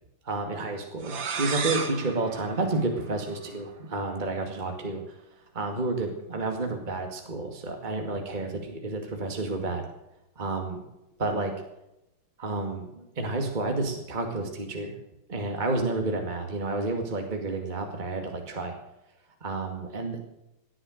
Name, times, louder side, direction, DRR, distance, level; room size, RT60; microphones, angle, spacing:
voice 1, 0.2-5.1 5.5-9.8 10.4-10.8 11.2-11.5 12.4-15.0 15.3-18.8 19.4-20.2, right 2 dB, 25° right, 3 dB, 2.2 m, -30 dB
sound 1, 1.0-3.6, right 5 dB, 70° right, 2.4 m, -34 dB
19.0 x 10.0 x 6.5 m, 0.89 s
omnidirectional pair, 2.1 m